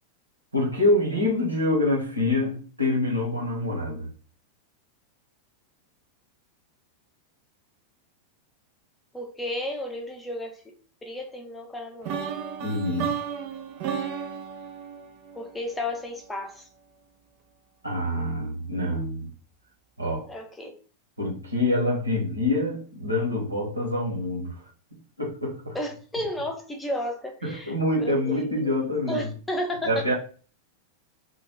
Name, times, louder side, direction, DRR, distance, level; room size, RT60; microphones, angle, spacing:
voice 1, 0.5-4.1 12.6-13.1 17.8-19.3 20.0-20.3 21.2-24.6 25.2-25.8 27.4-29.2 29.8-30.1, left 1 dB, 85° right, 1.0 m, -26 dB
voice 2, 9.1-10.7 11.0-12.3 15.3-16.7 20.3-20.7 25.7-28.7 29.1-30.1, left 1 dB, 10° left, 0.7 m, -33 dB
sound 1, 12.0-16.0, right 7 dB, 45° right, 0.4 m, -33 dB
2.3 x 2.2 x 3.3 m
figure-of-eight pair, 90°, 0 cm